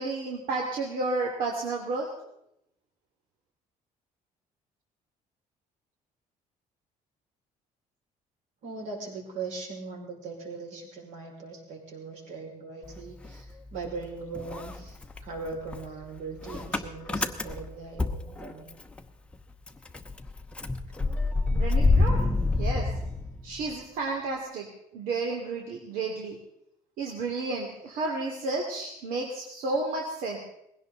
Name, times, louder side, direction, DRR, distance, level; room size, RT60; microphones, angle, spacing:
voice 1, 0.0-2.1 21.5-22.9 23.4-24.7 24.9-26.4 27.0-30.4, right 3 dB, 80° right, 0 dB, 2.8 m, -32 dB
voice 2, 8.6-15.0 15.2-18.7, right 4 dB, 60° right, 0 dB, 5.6 m, -39 dB
Motor vehicle (road) / Engine starting, 12.8-14.1 14.3-19.0 19.3-19.4 19.7-23.8, left 3 dB, 10° left, 0.8 m, -28 dB
20.5 x 17.0 x 4.0 m, 0.77 s
cardioid pair, 175°, 14 cm